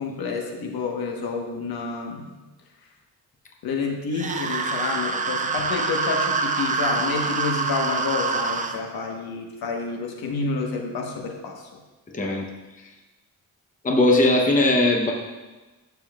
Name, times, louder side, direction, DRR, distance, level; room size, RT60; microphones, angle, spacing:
voice 1, 0.0-2.3 3.6-11.7, left 4 dB, 80° left, 1 dB, 1.3 m, -29 dB
sound 1, 4.1-8.8, right 4 dB, 20° right, 0.4 m, -26 dB
voice 2, 12.1-12.5 13.8-15.1, left 2 dB, 20° left, 1 dB, 0.8 m, -19 dB
12.0 x 7.0 x 2.4 m, 1.2 s
wide cardioid pair, 175°, 36 cm